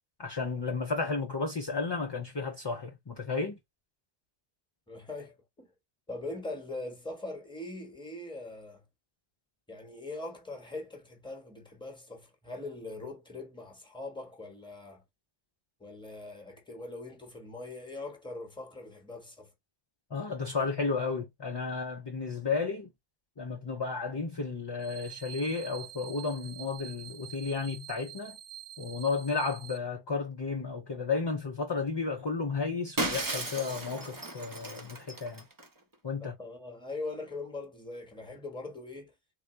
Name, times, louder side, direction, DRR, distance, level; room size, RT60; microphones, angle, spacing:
voice 1, 0.2-3.6 20.1-22.9 23.4-28.4 28.8-35.5 36.0-36.3, left 4 dB, 35° left, 0.5 m, -33 dB
voice 2, 4.9-5.7 6.1-8.8 9.7-15.0 15.8-19.5 36.2-39.1, left 2 dB, 5° left, 1.0 m, -41 dB
sound 1, 24.8-29.8, right 10 dB, 65° right, 0.8 m, -47 dB
Shatter, 33.0-35.7, right 2 dB, 25° right, 0.6 m, -35 dB
3.8 x 2.2 x 3.0 m
omnidirectional pair, 1.1 m